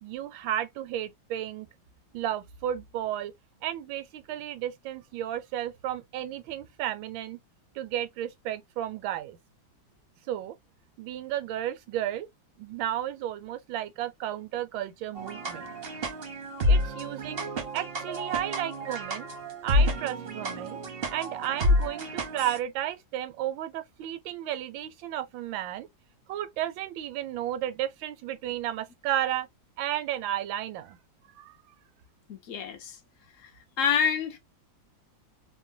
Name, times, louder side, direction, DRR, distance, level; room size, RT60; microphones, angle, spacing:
voice 1, 0.0-1.7 2.1-3.3 3.6-7.4 7.7-9.4 10.3-10.6 11.0-12.3 12.6-15.7 16.7-17.4 17.7-19.3 19.6-20.8 21.1-25.9 26.3-29.5 29.8-31.0 31.4-31.6, right 12 dB, 85° right, 1.3 m, -33 dB
sound 1, 15.2-22.6, left 1 dB, 55° right, 0.6 m, -29 dB
voice 2, 32.3-33.0 33.4-33.5 33.8-34.4, left 7 dB, 75° left, 0.7 m, -27 dB
3.1 x 2.1 x 2.5 m
omnidirectional pair, 2.1 m